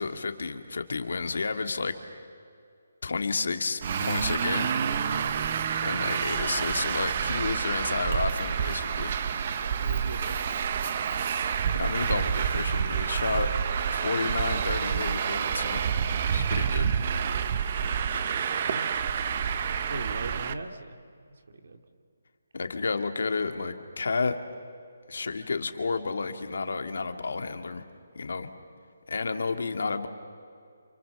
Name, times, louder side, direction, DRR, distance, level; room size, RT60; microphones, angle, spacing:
voice 1, 0.0-1.9 3.0-4.7 5.8-9.1 11.7-13.5 13.9-15.8 16.3-16.9 22.5-24.4 25.1-27.8 28.2-28.5 29.1-30.1, left 4 dB, 55° left, 7 dB, 2.0 m, -31 dB
Traffic noise roadway noise, 3.8-20.5, right 7 dB, 25° right, 0.7 m, -28 dB
voice 2, 9.5-10.5 18.6-18.9 19.9-21.0 21.6-21.8, right 2 dB, 50° right, 6 dB, 2.4 m, -39 dB
29.5 x 28.5 x 7.0 m, 2.3 s
hypercardioid pair, 180°, 0 cm